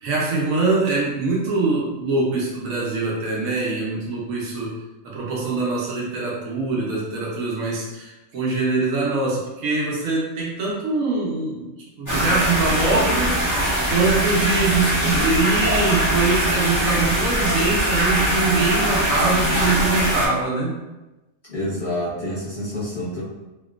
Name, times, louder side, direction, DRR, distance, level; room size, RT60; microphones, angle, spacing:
voice 1, 0.0-4.7 5.0-11.7 12.0-20.7, right 3 dB, 80° right, -4 dB, 1.2 m, -23 dB
sound 1, 12.1-20.3, equal, 15° left, 0.8 m, -21 dB
voice 2, 19.1-19.6 21.5-23.2, left 1 dB, 40° left, -9 dB, 1.2 m, -28 dB
3.0 x 2.9 x 2.3 m, 1.1 s
omnidirectional pair, 1.4 m